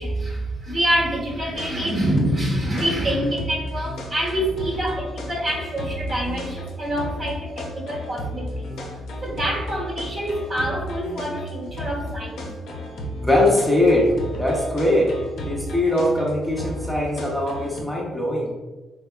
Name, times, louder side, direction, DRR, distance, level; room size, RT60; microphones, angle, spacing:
voice 1, 0.0-8.7 9.2-12.5, right 1 dB, 40° right, -1 dB, 1.0 m, -26 dB
sound 1, 1.5-17.8, left 1 dB, 70° left, 0.6 m, -33 dB
voice 2, 13.2-15.1 15.4-18.5, left 1 dB, ahead, -4 dB, 0.7 m, -21 dB
3.4 x 3.3 x 2.2 m, 1.2 s
cardioid pair, 90°, 0 cm